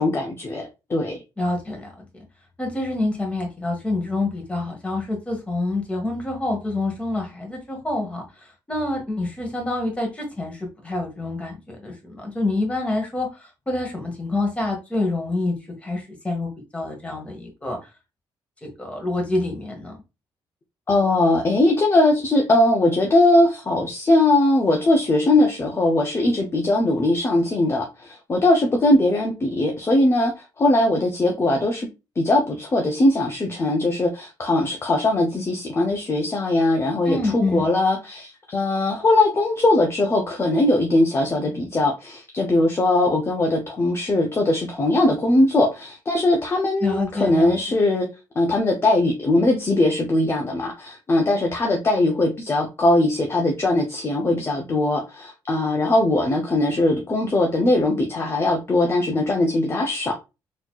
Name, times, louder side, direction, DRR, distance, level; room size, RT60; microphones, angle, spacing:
voice 1, 0.0-1.2 20.9-31.9 32.2-48.1 48.4-60.2, left 2 dB, 30° left, 2 dB, 0.7 m, -20 dB
voice 2, 1.4-2.0 2.6-15.6 15.8-17.8 18.6-20.0 37.0-37.7 46.8-47.8, left 2 dB, 15° left, 1 dB, 1.5 m, -27 dB
4.1 x 2.9 x 2.3 m, 0.27 s
cardioid pair, 90°, 8 cm